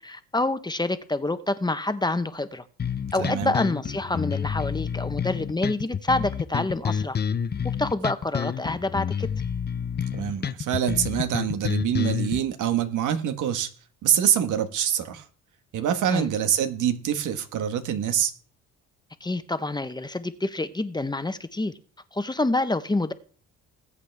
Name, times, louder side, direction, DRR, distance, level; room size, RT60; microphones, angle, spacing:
voice 1, 0.0-2.6 3.1-7.2 7.8-9.3 16.1-16.3 19.2-21.7 22.1-23.1, left 2 dB, 15° left, 1.1 m, -27 dB
sound 1, 2.8-12.4, left 7 dB, 35° left, 0.7 m, -29 dB
voice 2, 3.2-3.5 10.1-13.7 14.0-15.2 15.7-18.3, right 9 dB, 80° right, 1.7 m, -25 dB
20.5 x 8.3 x 3.6 m
cardioid pair, 90°, 30 cm